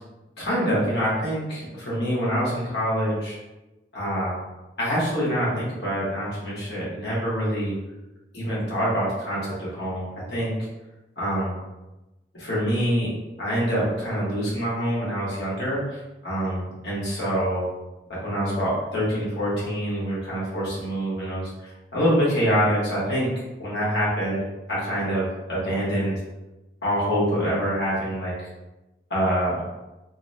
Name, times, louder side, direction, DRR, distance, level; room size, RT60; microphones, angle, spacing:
voice 1, 0.4-3.4 3.9-4.4 4.8-7.7 8.3-10.5 11.2-11.6 12.3-13.1 13.4-17.7 18.1-23.3 23.6-24.4 24.7-26.2 26.8-28.3 29.1-29.6, equal, 75° left, -7 dB, 1.1 m, -25 dB
2.7 x 2.1 x 2.6 m, 1.0 s
head